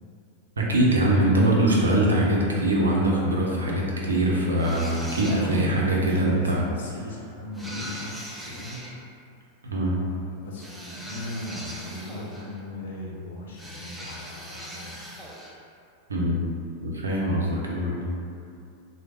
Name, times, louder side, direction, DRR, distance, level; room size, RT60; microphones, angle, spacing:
voice 1, 0.6-6.6 7.8-7.9 9.7-10.0 16.1-16.4 16.8-18.1, right 1 dB, 75° right, -3 dB, 0.5 m, -23 dB
sound 1, 4.6-5.7 7.5-9.0 10.6-12.6 13.6-15.6, equal, 5° right, 0.4 m, -40 dB
voice 2, 5.2-8.8 10.1-15.3, left 2 dB, 60° left, -4 dB, 0.5 m, -36 dB
3.0 x 2.0 x 2.8 m, 2.4 s
figure-of-eight pair, 90°, 0 cm